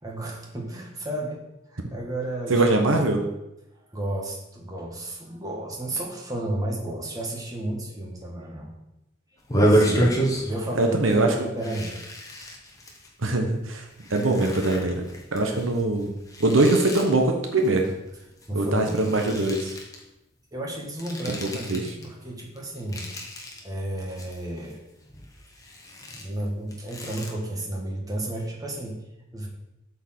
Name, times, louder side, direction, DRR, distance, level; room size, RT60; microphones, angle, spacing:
voice 1, 0.0-1.4 1.7-2.6 3.9-8.7 10.4-12.0 18.5-19.3 20.5-23.1 23.6-24.8 26.2-29.0 29.3-29.5, right 1 dB, 20° right, -2 dB, 1.7 m, -32 dB
voice 2, 2.5-3.2 9.7-10.1 10.7-11.5 13.2-15.1 15.3-16.1 16.4-17.9 18.5-19.7 21.4-21.9, right 2 dB, 75° right, 3 dB, 1.0 m, -23 dB
sound 1, 9.4-10.7 11.0-11.2 11.6-13.1 13.7-18.5 18.7-20.0 20.8-22.1 22.4-23.6 24.0-24.7 25.1-27.3, right 1 dB, 15° left, 1.4 m, -29 dB
8.3 x 4.6 x 5.9 m, 0.91 s
head